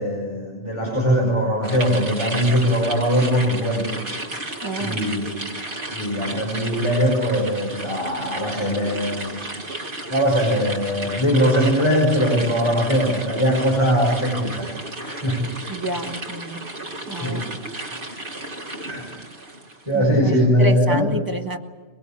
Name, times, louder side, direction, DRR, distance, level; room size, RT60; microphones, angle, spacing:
voice 1, 0.0-3.9 4.8-5.3 5.9-9.5 10.1-15.4 17.2-17.5 18.3-18.5 18.8-19.2 19.9-21.0, equal, 30° left, -1 dB, 5.3 m, -21 dB
sound 1, 1.6-19.9, right 2 dB, 50° right, 1.9 m, -33 dB
voice 2, 4.6-5.0 15.7-16.7 17.1-17.5 19.9-21.6, right 2 dB, 20° right, 3 dB, 1.7 m, -29 dB
22.5 x 22.0 x 8.7 m, 1.4 s
omnidirectional pair, 1.1 m